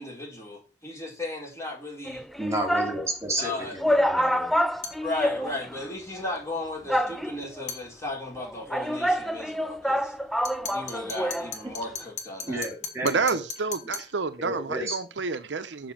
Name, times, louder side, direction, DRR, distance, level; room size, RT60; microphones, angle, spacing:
voice 1, 0.0-2.2 3.4-3.8 5.0-10.1 10.7-12.6, left 2 dB, 15° left, 4.8 m, -35 dB
sound 1, 2.1-3.0 3.5-3.6 3.8-5.9 6.1-6.2 6.9-7.6 8.4-11.5 11.8-11.9, equal, ahead, 0.4 m, -27 dB
voice 2, 2.4-4.5 11.6-11.7 12.5-13.4 14.4-15.0, right 1 dB, 15° right, 3.2 m, -32 dB
sound 2, 4.8-5.1 7.7-7.9 10.4-14.2, left 5 dB, 40° left, 1.5 m, -38 dB
voice 3, 13.0-15.9, right 4 dB, 75° right, 0.8 m, -29 dB
7.1 x 5.4 x 7.2 m
head